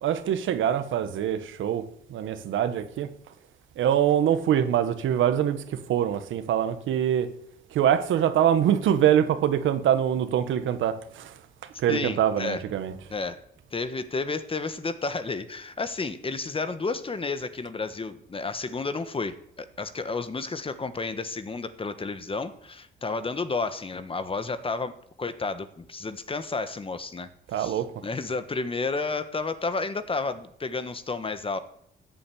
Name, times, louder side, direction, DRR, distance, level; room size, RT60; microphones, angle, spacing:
voice 1, 0.0-1.8 2.1-3.1 3.8-7.3 7.7-11.4 11.8-13.0 27.5-27.9, right 10 dB, 75° right, 1.4 m, -24 dB
voice 2, 11.9-12.6 13.1-13.4 13.7-27.3 27.6-31.6, left 3 dB, 25° left, 1.3 m, -31 dB
14.5 x 7.7 x 8.5 m
cardioid pair, 90°, 20 cm